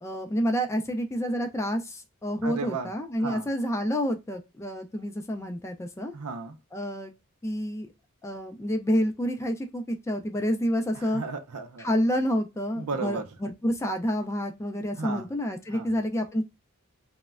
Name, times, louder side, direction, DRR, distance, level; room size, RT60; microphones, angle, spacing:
voice 1, 0.0-6.1 6.7-7.1 7.4-7.9 8.2-11.2 11.8-16.4, equal, 15° left, 0.3 m, -28 dB
voice 2, 2.4-2.9 3.2-3.5 6.1-6.6 10.9-11.9 12.8-13.3 15.0-15.3 15.7-15.9, right 4 dB, 85° right, 0.5 m, -34 dB
3.1 x 2.1 x 2.3 m
head